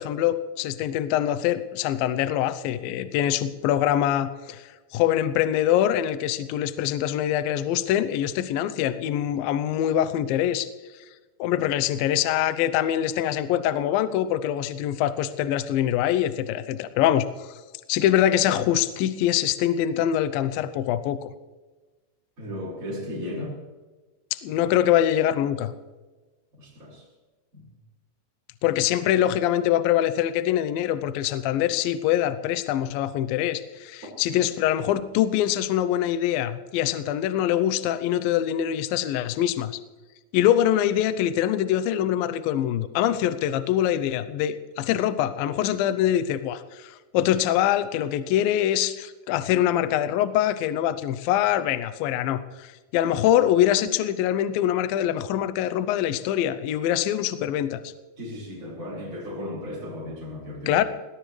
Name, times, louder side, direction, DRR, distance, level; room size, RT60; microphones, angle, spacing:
voice 1, 0.0-10.7 11.4-17.5 17.9-21.3 24.4-25.7 28.6-39.7 40.3-57.8 60.7-60.8, left 11 dB, 80° left, 12 dB, 2.1 m, -24 dB
voice 2, 22.4-23.6 26.6-27.0 27.5-27.6 58.2-60.8, left 1 dB, 15° right, -5 dB, 5.7 m, -35 dB
19.5 x 18.5 x 3.3 m, 1.3 s
omnidirectional pair, 5.0 m